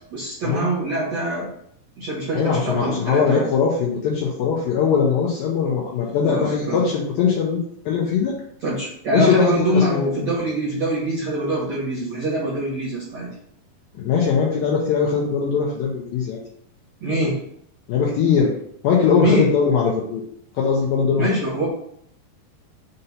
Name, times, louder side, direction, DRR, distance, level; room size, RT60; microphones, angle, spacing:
voice 1, 0.1-1.5 2.0-3.4 6.2-6.9 8.6-13.3 17.0-17.4 19.2-19.5 21.2-21.7, right 1 dB, 65° right, -6 dB, 1.7 m, -24 dB
voice 2, 2.3-8.3 9.1-10.0 14.0-16.4 17.9-18.5 18.8-20.2 20.6-21.4, left 6 dB, 80° left, -3 dB, 2.1 m, -20 dB
6.6 x 2.7 x 5.6 m, 0.70 s
omnidirectional pair, 5.0 m